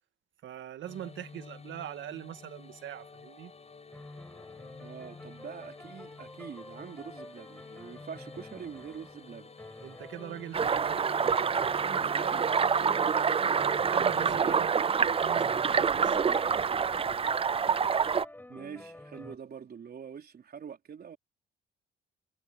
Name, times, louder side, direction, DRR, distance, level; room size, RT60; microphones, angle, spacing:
voice 1, 0.4-3.5 9.8-11.3 13.4-16.8, right 11 dB, 75° right, 1.9 m, -43 dB
sound 1, 0.9-14.4, left 4 dB, 30° left, 7.4 m, -50 dB
sound 2, 3.9-9.3 9.6-19.4, left 1 dB, 10° left, 5.8 m, -49 dB
voice 2, 4.8-9.6 12.1-12.6 18.5-21.2, right 7 dB, 50° right, 3.7 m, -44 dB
sound 3, 10.5-18.2, right 6 dB, 30° right, 0.5 m, -27 dB
cardioid pair, 90°, 20 cm